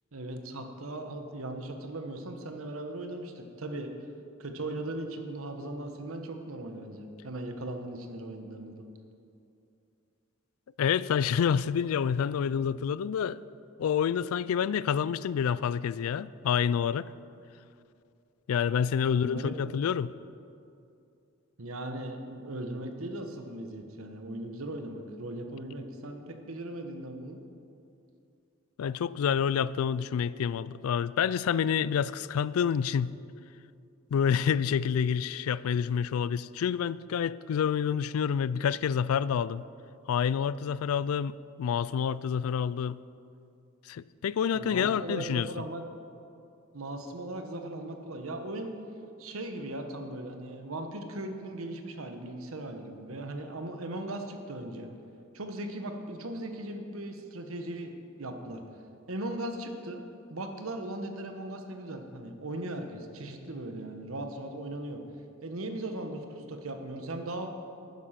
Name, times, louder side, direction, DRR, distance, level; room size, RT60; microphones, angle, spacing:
voice 1, 0.1-3.9 4.4-8.9 19.1-19.5 21.6-27.4 44.5-45.8 46.7-48.7 49.2-54.9 55.3-58.6 59.1-60.0 60.3-65.0 65.4-67.5, right 1 dB, 85° right, 5 dB, 1.2 m, -38 dB
voice 2, 10.8-13.4 13.8-17.1 18.5-20.1 28.8-33.1 34.1-39.6 40.1-43.0 43.9-45.5, left 7 dB, 90° left, 18 dB, 0.3 m, -28 dB
11.5 x 9.5 x 5.8 m, 2.6 s
head